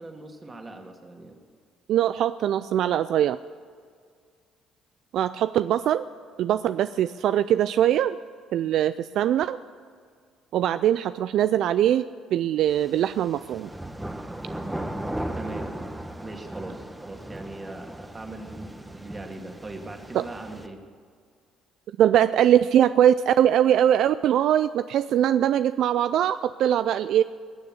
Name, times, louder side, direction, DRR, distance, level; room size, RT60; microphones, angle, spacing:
voice 1, 0.0-1.4 15.3-15.8 16.2-20.8, right 2 dB, 25° right, 3 dB, 2.3 m, -40 dB
voice 2, 1.9-3.4 5.1-6.0 6.4-8.2 8.5-9.6 10.5-12.0 12.3-13.7 20.1-20.2 22.0-27.2, right 11 dB, 70° right, 13 dB, 0.3 m, -22 dB
sound 1, 12.7-20.7, right 1 dB, 10° right, 1.2 m, -37 dB
20.5 x 6.8 x 8.8 m, 2.1 s
supercardioid pair, 70°, 0 cm